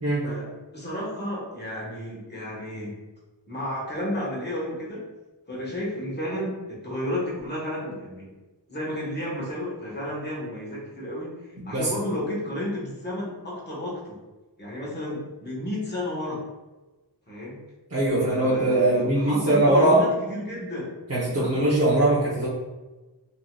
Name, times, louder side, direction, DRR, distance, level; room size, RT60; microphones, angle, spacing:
voice 1, 0.7-2.9 3.5-5.0 5.5-8.3 8.7-14.2 14.6-16.4 17.3-17.6 18.1-21.6, left 1 dB, 20° left, -6 dB, 1.3 m, -32 dB
voice 2, 11.6-11.9 17.9-20.0 21.1-22.5, right 1 dB, 30° right, -10 dB, 1.0 m, -21 dB
3.8 x 2.8 x 2.4 m, 1.2 s
wide cardioid pair, 45°, 46 cm